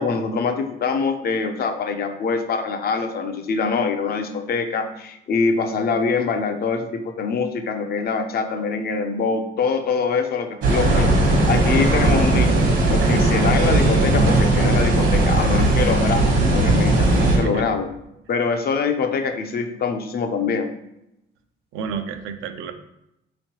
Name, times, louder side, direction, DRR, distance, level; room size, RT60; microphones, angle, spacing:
voice 1, 0.0-17.9 18.3-20.7, left 5 dB, 50° left, 7 dB, 0.5 m, -24 dB
sound 1, 10.6-17.4, right 2 dB, 70° right, 1.1 m, -18 dB
voice 2, 21.7-22.7, right 5 dB, 85° right, 7 dB, 0.4 m, -29 dB
3.6 x 3.1 x 2.9 m, 0.85 s
cardioid pair, 90°, 20 cm